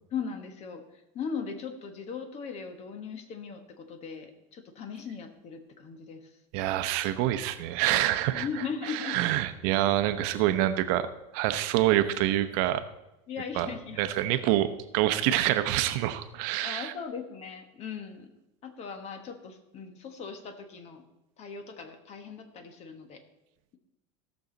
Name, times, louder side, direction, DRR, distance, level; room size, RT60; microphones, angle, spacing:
voice 1, 0.1-0.8 1.1-6.3 8.3-9.2 11.6-11.7 13.3-14.0 16.6-18.3 18.6-21.0 21.4-23.2, left 6 dB, 40° left, 8 dB, 1.4 m, -38 dB
voice 2, 6.5-8.5 8.9-11.1 11.3-12.8 13.6-13.7 14.0-14.7 14.9-16.9, right 13 dB, 60° right, 11 dB, 0.8 m, -26 dB
16.5 x 6.4 x 4.0 m, 0.95 s
supercardioid pair, 120°, 17 cm